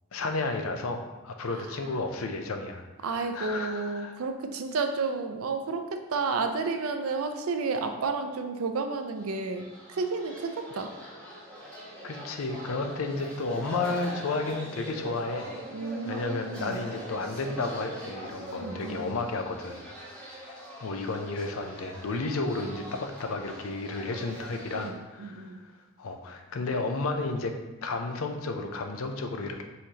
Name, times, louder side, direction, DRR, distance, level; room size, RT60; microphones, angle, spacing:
voice 1, 0.1-4.1 12.0-15.5 16.0-19.9 20.3-20.5 20.8-25.6 26.0-27.5 27.8-29.6, left 3 dB, 75° left, 5 dB, 0.5 m, -32 dB
voice 2, 3.0-10.9 15.7-16.8 18.6-19.1 24.7-25.6, right 4 dB, 85° right, 6 dB, 0.5 m, -31 dB
sound 1, 9.1-24.9, equal, 5° left, 1.5 m, -43 dB
5.6 x 3.1 x 2.8 m, 1.2 s
head